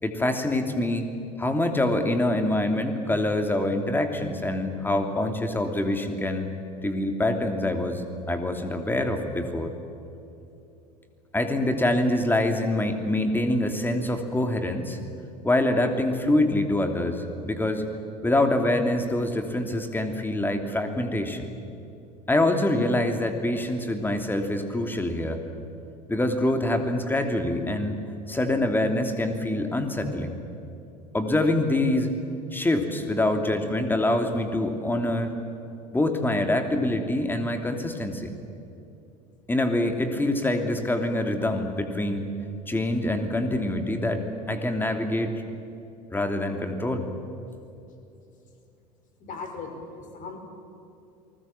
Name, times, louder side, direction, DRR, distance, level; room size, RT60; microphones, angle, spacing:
voice 1, 0.0-1.1 1.4-6.5 6.8-9.7 11.3-15.0 15.4-17.8 18.2-21.5 22.3-25.4 26.1-30.4 31.1-32.1 32.5-35.3 35.9-38.3 39.5-42.3 42.7-45.3 46.1-47.0, left 1 dB, 10° left, 5 dB, 2.9 m, -25 dB
voice 2, 49.2-50.4, left 4 dB, 40° left, 5 dB, 5.1 m, -38 dB
29.5 x 20.0 x 7.6 m, 2.8 s
figure-of-eight pair, 75°, 21 cm